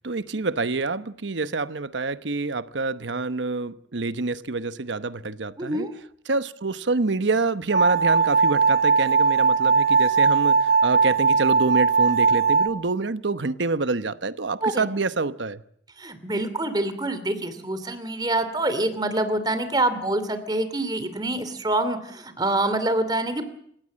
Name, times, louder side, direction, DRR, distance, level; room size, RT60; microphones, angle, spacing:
voice 1, 0.0-5.9 6.3-15.6, right 3 dB, 90° right, 1.0 m, -27 dB
voice 2, 5.6-5.9 14.6-14.9 16.0-23.5, right 2 dB, 20° right, 2.7 m, -26 dB
sound 1, 7.7-12.7, right 5 dB, 55° right, 1.8 m, -19 dB
28.0 x 16.5 x 7.6 m
head